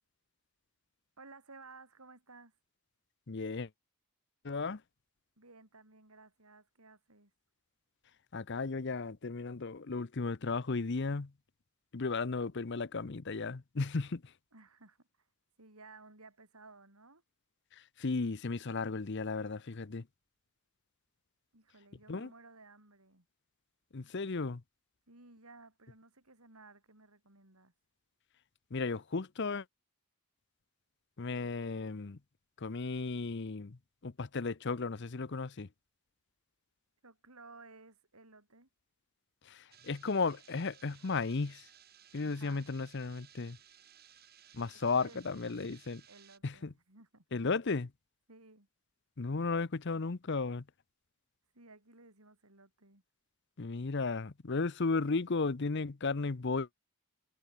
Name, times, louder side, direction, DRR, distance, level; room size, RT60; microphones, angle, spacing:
voice 1, 1.2-2.5 5.4-7.3 14.5-15.1 15.6-17.2 21.5-23.3 25.1-27.7 37.0-38.7 42.2-42.7 44.7-45.6 46.1-47.2 48.3-48.7 51.5-53.0, right 3 dB, 85° right, 6.7 m, -57 dB
voice 2, 3.3-3.7 4.4-4.8 8.3-11.3 11.9-14.2 18.0-20.0 22.1-22.3 23.9-24.6 28.7-29.6 31.2-32.2 32.6-33.8 34.0-35.7 39.5-41.6 42.1-43.6 44.5-46.0 46.4-46.7 47.3-47.9 49.2-50.6 53.6-56.7, left 4 dB, 55° left, 0.7 m, -34 dB
sound 1, 39.7-46.4, right 10 dB, 45° right, 7.9 m, -60 dB
head